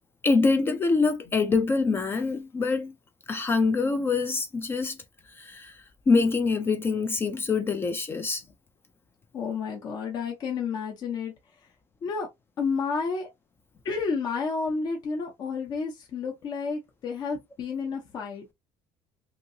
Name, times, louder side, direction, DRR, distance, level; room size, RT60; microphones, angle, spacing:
voice 1, 0.2-2.9 3.3-5.0 5.4-8.4, left 4 dB, 20° left, 0.4 m, -25 dB
voice 2, 9.3-11.3 12.0-12.3 12.6-13.3 13.8-18.5, left 5 dB, 40° left, 0.7 m, -30 dB
2.9 x 2.7 x 2.6 m
cardioid pair, 160°, 11 cm